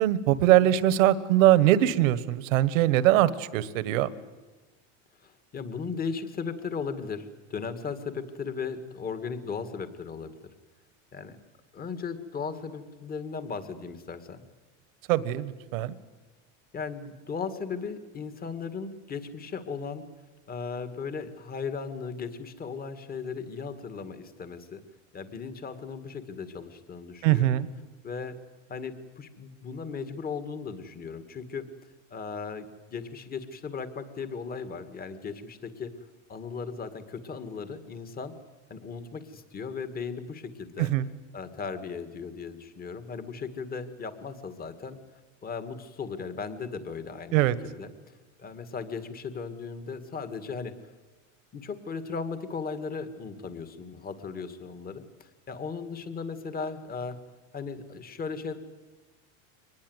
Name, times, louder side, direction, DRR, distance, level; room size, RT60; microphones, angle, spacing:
voice 1, 0.0-4.1 15.1-15.9 27.2-27.7 40.8-41.0 47.3-47.5, right 14 dB, 75° right, 15 dB, 1.6 m, -22 dB
voice 2, 5.2-10.3 11.1-11.4 11.7-14.4 16.7-20.1 20.5-24.8 25.1-27.5 28.0-28.4 28.7-31.7 32.1-35.9 36.3-38.3 38.7-40.9 41.3-45.0 45.4-47.4 47.6-47.9 48.4-50.7 51.5-57.2 57.5-58.6, left 5 dB, 20° left, 10 dB, 2.1 m, -37 dB
24.5 x 20.5 x 8.1 m, 1.3 s
supercardioid pair, 135°, 40 cm